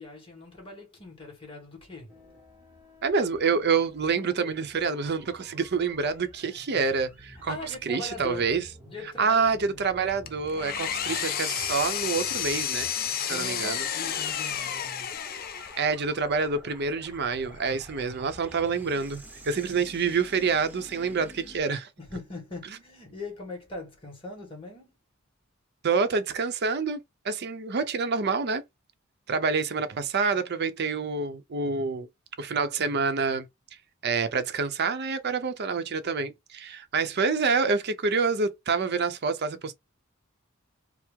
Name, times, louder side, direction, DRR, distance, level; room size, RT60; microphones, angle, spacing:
voice 1, 0.0-2.1 7.5-8.5 8.8-9.8 13.3-15.1 22.0-24.9, left 2 dB, 25° left, 1.9 m, -41 dB
sound 1, 2.1-21.6, right 1 dB, 10° right, 0.8 m, -50 dB
voice 2, 3.0-7.6 7.9-8.6 9.2-12.9 13.2-13.8 15.8-21.9 25.8-27.0 27.2-28.6 29.3-32.1 32.4-33.5 34.0-39.7, right 5 dB, 55° right, 0.6 m, -27 dB
Engine, 10.3-16.0, left 9 dB, 45° left, 0.5 m, -31 dB
4.6 x 2.0 x 3.6 m
head